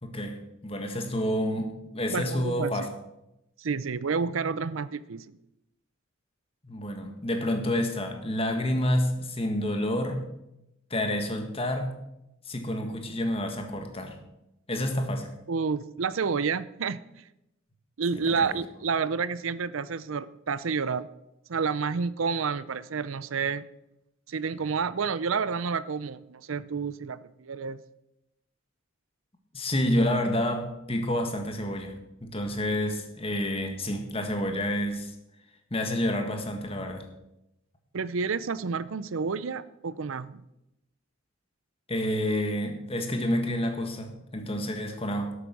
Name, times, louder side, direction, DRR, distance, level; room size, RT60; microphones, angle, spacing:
voice 1, 0.0-2.9 6.6-10.2 10.9-11.9 12.4-14.2 14.7-15.3 18.2-18.6 29.5-35.1 35.7-37.1 41.9-45.3, left 1 dB, 25° left, 5 dB, 1.6 m, -29 dB
voice 2, 2.1-2.9 3.6-5.2 15.5-17.0 18.0-21.1 21.5-23.6 24.3-27.8 37.9-40.4, right 5 dB, 75° right, 17 dB, 0.6 m, -29 dB
12.5 x 8.3 x 6.2 m, 0.88 s
head